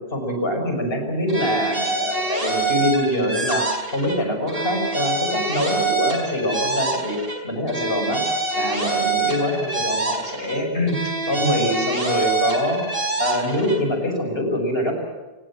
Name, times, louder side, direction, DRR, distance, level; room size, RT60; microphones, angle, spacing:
voice 1, 0.1-3.6 3.9-7.2 7.4-8.2 8.5-11.0 11.2-12.8 13.2-14.9, left 1 dB, 70° left, 4 dB, 6.6 m, -24 dB
sound 1, 1.3-4.2 4.5-7.4 7.7-10.6 10.9-13.8, right 3 dB, 70° right, 5.2 m, -25 dB
28.0 x 20.5 x 7.5 m, 1.2 s
omnidirectional pair, 1.0 m